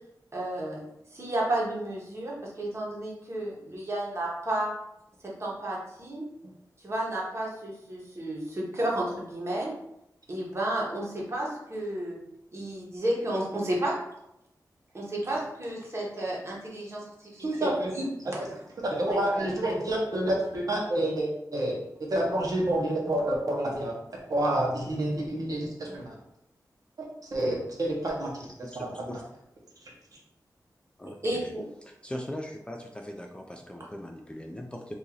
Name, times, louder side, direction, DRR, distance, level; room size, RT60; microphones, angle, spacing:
voice 1, 0.3-0.8 1.1-4.7 5.4-6.2 6.8-9.7 10.3-12.2 12.5-13.9 14.9-17.0 17.3-18.0 19.1-19.4 31.2-31.6, right 1 dB, 40° right, -4 dB, 1.1 m, -32 dB
voice 2, 17.4-17.9 18.2-18.3 18.8-21.7 22.1-26.1 27.0-29.2 29.8-29.9, right 1 dB, 60° right, -3 dB, 1.0 m, -29 dB
voice 3, 28.7-29.2 31.0-31.5 31.9-35.0, left 1 dB, 15° left, 1 dB, 0.3 m, -40 dB
2.9 x 2.6 x 3.8 m, 0.83 s
wide cardioid pair, 105°, 7 cm